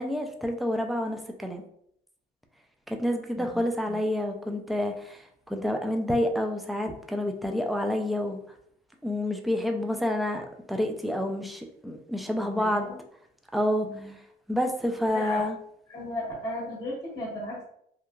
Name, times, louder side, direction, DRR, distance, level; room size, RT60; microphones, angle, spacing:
voice 1, 0.0-1.6 2.9-8.4 9.0-12.9 13.5-13.9 14.5-15.6, left 1 dB, ahead, 4 dB, 0.3 m, -28 dB
voice 2, 12.6-13.0 13.8-14.1 15.1-15.4 15.9-17.6, left 1 dB, 30° left, -7 dB, 1.1 m, -35 dB
2.8 x 2.3 x 2.2 m, 0.69 s
cardioid pair, 110°, 17 cm